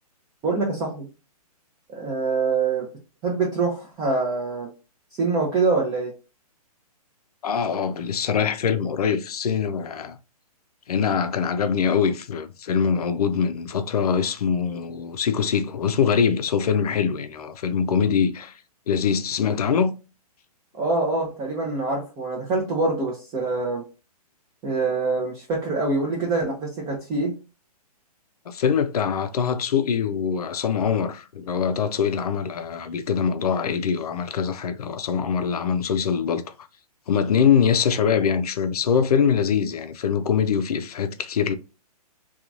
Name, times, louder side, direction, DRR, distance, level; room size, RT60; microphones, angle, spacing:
voice 1, 0.4-1.1 1.9-2.9 3.2-4.7 5.2-6.1 20.8-23.8 24.6-27.3, right 3 dB, 20° right, 0.6 m, -25 dB
voice 2, 7.4-10.2 10.9-18.5 18.9-19.9 28.5-36.4 37.1-41.5, left 7 dB, 70° left, 0.5 m, -23 dB
2.9 x 2.3 x 2.5 m
hypercardioid pair, 135°, 20 cm